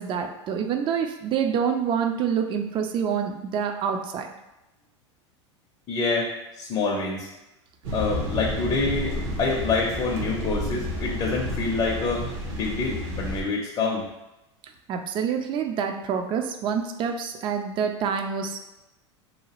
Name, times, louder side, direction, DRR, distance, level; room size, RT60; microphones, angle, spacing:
voice 1, 0.0-4.3 14.9-18.6, right 7 dB, 35° right, 7 dB, 0.3 m, -27 dB
voice 2, 5.9-6.3 6.6-7.3 7.9-12.2 12.5-14.0, left 4 dB, 30° left, -2 dB, 0.5 m, -26 dB
sound 1, 7.8-13.4, left 1 dB, 65° right, 0.9 m, -31 dB
2.8 x 2.3 x 2.9 m, 0.96 s
hypercardioid pair, 95°, 15 cm